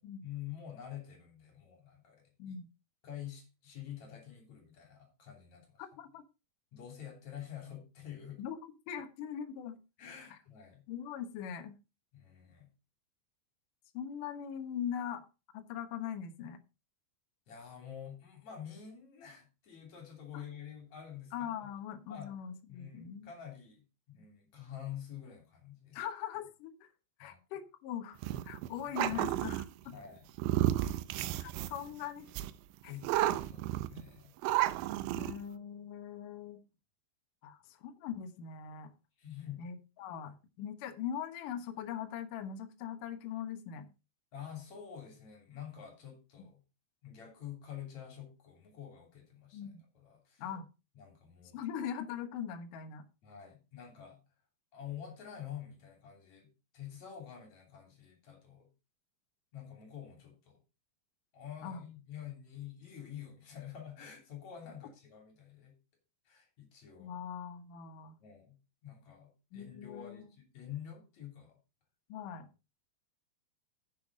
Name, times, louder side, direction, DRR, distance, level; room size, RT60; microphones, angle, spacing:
voice 1, 0.2-2.6 3.0-5.8 6.7-8.4 10.0-10.8 12.1-12.7 17.5-21.7 22.1-22.3 22.7-26.0 27.2-27.4 28.9-29.0 29.9-30.3 32.8-34.3 35.0-35.4 39.2-39.6 44.3-46.6 47.0-50.4 51.0-51.6 53.2-54.2 54.7-58.7 59.5-60.6 61.3-65.7 66.3-67.2 68.2-68.6 68.8-71.6, left 9 dB, 40° left, 2 dB, 3.8 m, -48 dB
voice 2, 5.8-6.2 8.4-8.6 8.9-9.8 10.9-11.8 13.9-15.3 15.5-16.6 20.3-20.4 21.3-23.3 25.9-26.9 27.2-28.2 28.4-29.7 31.4-32.3 32.8-32.9 35.2-36.6 37.4-38.9 39.6-43.9 46.4-46.5 49.5-49.8 50.4-50.6 51.5-53.1 61.6-61.8 67.0-68.2 69.5-70.3 72.1-72.5, left 9 dB, 70° left, 7 dB, 2.0 m, -41 dB
sound 1, 28.2-29.7 30.4-31.9 32.4-32.5 33.0-34.0 34.4-35.4, right 14 dB, 80° right, 2.8 m, -32 dB
10.5 x 7.9 x 3.8 m, 0.29 s
omnidirectional pair, 5.4 m